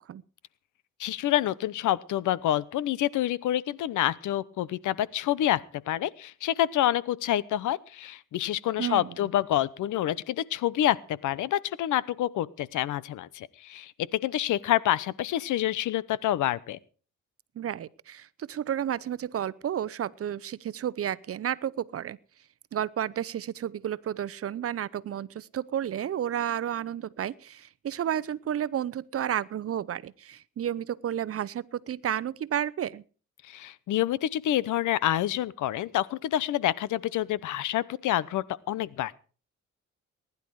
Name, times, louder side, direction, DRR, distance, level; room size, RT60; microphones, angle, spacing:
voice 1, 1.0-5.6 5.9-16.8 33.5-39.1, left 12 dB, 80° left, 0.9 m, -27 dB
voice 2, 8.8-9.1 17.6-22.2 22.7-33.0, right 10 dB, 50° right, 0.8 m, -31 dB
19.5 x 11.0 x 4.8 m
cardioid pair, 90°, 30 cm